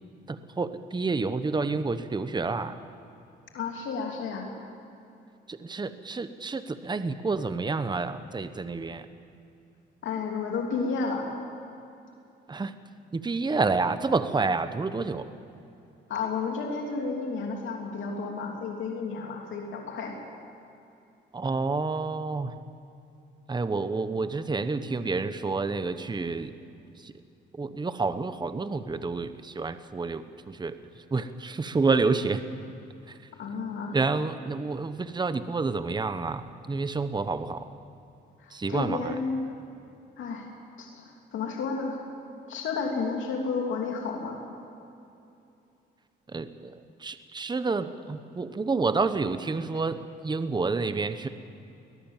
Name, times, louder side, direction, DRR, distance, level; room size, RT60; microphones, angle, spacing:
voice 1, 0.3-2.8 5.5-9.1 12.5-12.7 13.1-15.3 21.3-22.5 23.5-26.5 27.0-27.1 27.5-30.8 31.1-32.4 33.1-33.2 33.9-37.7 38.5-39.1 46.3-51.3, right 4 dB, 20° right, 11 dB, 1.1 m, -29 dB
voice 2, 3.5-4.5 10.0-11.3 16.1-20.2 33.4-34.0 38.4-39.5 40.2-40.5 40.8-42.0 42.5-44.4, left 4 dB, 75° left, 1 dB, 3.0 m, -32 dB
21.5 x 19.5 x 7.4 m, 2.7 s
cardioid pair, 90°, 20 cm